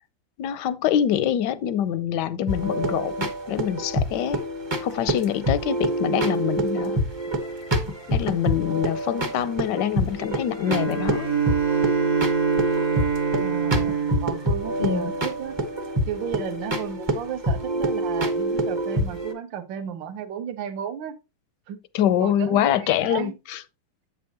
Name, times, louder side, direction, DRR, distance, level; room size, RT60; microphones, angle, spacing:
voice 1, 0.4-4.4 4.8-7.0 8.1-11.3 14.8-15.1 21.9-23.6, left 10 dB, 70° left, 1.1 m, -25 dB
sound 1, 2.5-19.3, right 1 dB, 20° right, 0.7 m, -27 dB
Bowed string instrument, 10.6-15.7, right 6 dB, 50° right, 1.0 m, -27 dB
voice 2, 13.4-15.6 16.1-21.2 21.7-21.8 22.2-23.3, right 9 dB, 70° right, 1.6 m, -33 dB
8.1 x 6.9 x 2.9 m
omnidirectional pair, 2.2 m